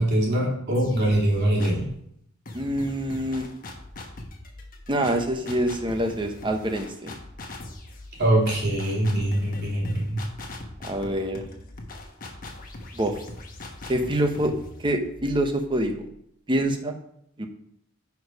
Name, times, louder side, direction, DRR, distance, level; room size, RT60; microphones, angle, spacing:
voice 1, 0.0-1.8 8.2-10.2, right 1 dB, 50° right, -3 dB, 2.7 m, -23 dB
sound 1, 0.7-2.0 2.5-16.2, left 2 dB, 40° left, 1.2 m, -41 dB
voice 2, 2.5-3.5 4.9-7.2 10.8-11.4 12.9-13.1 13.9-14.5 14.8-15.9 16.5-16.9 17.4-17.5, right 1 dB, 25° right, 5 dB, 1.0 m, -25 dB
10.0 x 4.8 x 4.8 m, 0.72 s
head